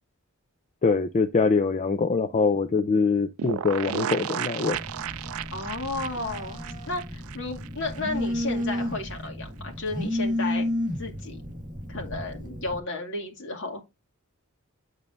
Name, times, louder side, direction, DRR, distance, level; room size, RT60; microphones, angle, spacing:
voice 1, 0.8-4.8, left 4 dB, 35° left, 0.4 m, -23 dB
sound 1, 3.4-8.0 8.3-8.4 8.6-8.7, right 9 dB, 70° right, 0.4 m, -34 dB
Telephone, 4.7-12.8, left 1 dB, 40° right, 1.9 m, -32 dB
voice 2, 5.5-10.7 11.0-11.4 11.9-13.8, left 2 dB, 60° left, 2.3 m, -33 dB
7.9 x 7.2 x 2.5 m
head